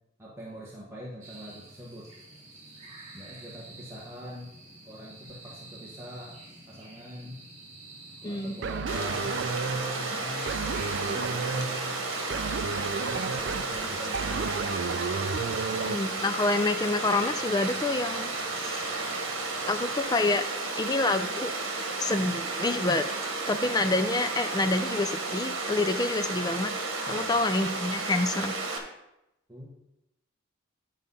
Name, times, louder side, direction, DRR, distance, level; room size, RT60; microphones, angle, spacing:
voice 1, 0.2-2.1 3.1-4.5 4.8-6.4 6.7-7.4 8.2-9.4 10.0-10.6 11.0-11.7 13.0-14.8 27.1-27.4 29.5-29.7, equal, 15° right, -6 dB, 1.2 m, -43 dB
sound 1, 1.2-20.0, right 2 dB, 35° right, 2.0 m, -48 dB
voice 2, 8.2-8.6 15.8-19.1 19.7-20.4 20.8-21.5 22.0-23.1 23.5-26.7 27.1-28.6, left 2 dB, 20° left, 8 dB, 0.4 m, -27 dB
sound 2, 8.6-16.0, right 4 dB, 60° right, 0.4 m, -33 dB
Water, 8.9-28.8, right 3 dB, 75° right, 1.4 m, -33 dB
10.5 x 4.0 x 5.4 m, 0.90 s
head